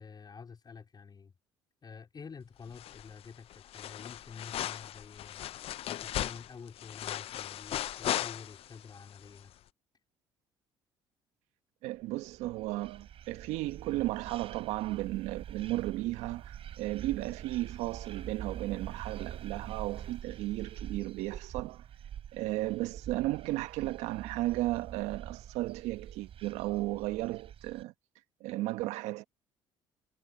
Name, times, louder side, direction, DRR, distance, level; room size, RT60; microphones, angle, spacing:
voice 1, 0.0-1.3 1.8-5.5 5.9-9.5, left 5 dB, 40° left, 4.6 m, -49 dB
sound 1, 2.7-3.3 3.5-8.8 9.2-9.3, left 12 dB, 60° left, 0.6 m, -37 dB
voice 2, 11.8-21.9 22.3-27.9 28.4-29.2, right 18 dB, 75° right, 1.5 m, -34 dB
sound 2, 12.1-27.8, right 10 dB, 55° right, 4.0 m, -45 dB
hypercardioid pair, 60°, 11 cm